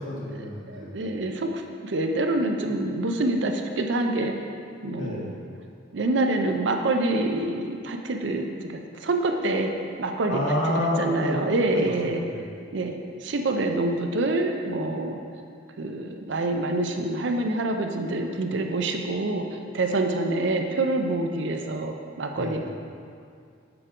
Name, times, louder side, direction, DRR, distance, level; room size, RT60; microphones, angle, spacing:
voice 1, 0.0-1.0 4.9-5.4 10.3-11.4 11.7-12.4 18.9-19.0 22.3-22.7, left 1 dB, 80° left, -4 dB, 1.4 m, -29 dB
voice 2, 0.7-1.5 1.8-4.3 4.8-5.3 5.9-9.7 10.0-10.4 10.8-12.2 12.7-12.9 13.2-15.2 15.8-22.7, right 2 dB, 70° right, 4 dB, 0.5 m, -26 dB
6.8 x 4.9 x 3.7 m, 2.3 s
head